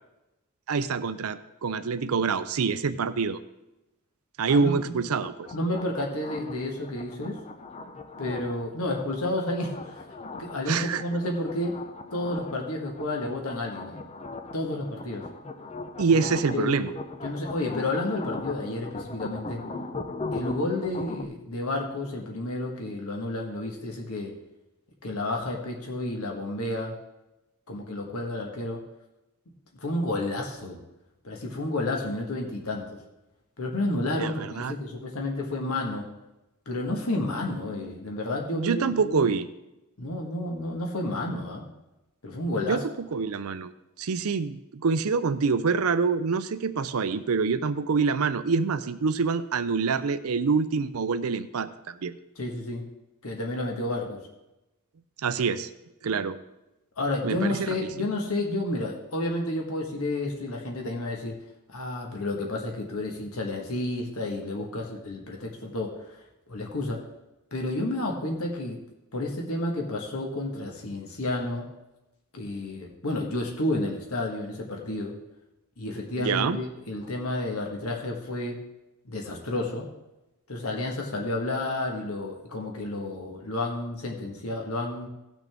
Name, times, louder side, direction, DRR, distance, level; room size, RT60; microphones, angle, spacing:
voice 1, 0.7-3.4 4.4-5.5 10.7-11.0 16.0-16.9 34.1-34.7 38.5-39.5 42.7-42.8 43.1-43.7 44.0-52.1 55.2-55.7 56.0-56.4 57.2-57.8 76.2-76.6, right 5 dB, 80° right, 11 dB, 0.5 m, -26 dB
sound 1, 5.2-21.2, left 3 dB, 30° left, 0.6 m, -39 dB
voice 2, 5.5-7.4 8.2-10.1 10.4-11.8 12.1-14.0 14.5-15.3 16.5-16.9 17.2-19.6 20.3-24.4 25.0-27.0 27.7-28.8 29.8-30.8 31.2-33.0 33.6-36.1 36.6-39.3 40.0-41.6 42.2-42.8 52.4-52.8 53.2-54.2 57.0-61.3 61.7-66.1 66.5-67.0 67.5-68.8 69.1-71.6 72.3-75.2 75.8-78.6 79.0-79.9 80.5-85.1, left 2 dB, 85° left, 1 dB, 1.5 m, -31 dB
17.5 x 6.1 x 3.5 m, 0.96 s
head